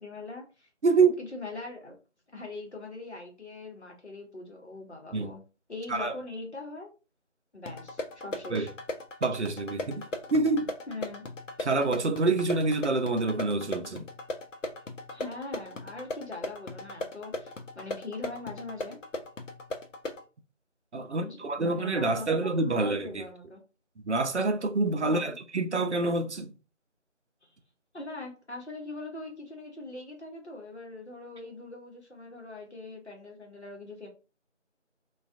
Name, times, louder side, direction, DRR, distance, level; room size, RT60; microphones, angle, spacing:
voice 1, 0.0-0.7 1.0-2.0 2.3-5.4 5.7-6.9 7.5-8.7 10.9-11.2 15.1-19.0 21.2-23.6 25.0-25.3 27.4-27.5 27.9-34.1, left 3 dB, 60° left, 0.9 m, -42 dB
voice 2, 0.8-1.2 5.1-5.3 5.9-6.1 8.5-8.7 9.2-10.1 10.3-10.7 11.6-14.1 20.9-23.2 24.0-26.5, right 3 dB, 65° right, 0.5 m, -27 dB
sound 1, 7.7-20.2, left 2 dB, 85° left, 0.6 m, -38 dB
2.3 x 2.3 x 2.4 m
figure-of-eight pair, 180°, 37 cm